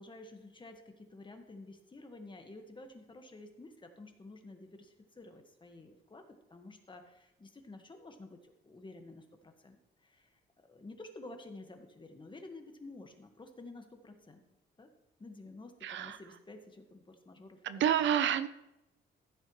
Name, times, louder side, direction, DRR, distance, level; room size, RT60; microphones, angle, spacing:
voice 1, 0.0-10.4 10.7-14.4 14.8-14.9 15.2-17.6, left 2 dB, 25° left, 5 dB, 1.6 m, -51 dB
voice 2, 15.8-16.2 17.6-18.5, right 10 dB, 70° right, 13 dB, 0.6 m, -29 dB
15.0 x 8.2 x 3.2 m, 0.91 s
cardioid pair, 90°, 20 cm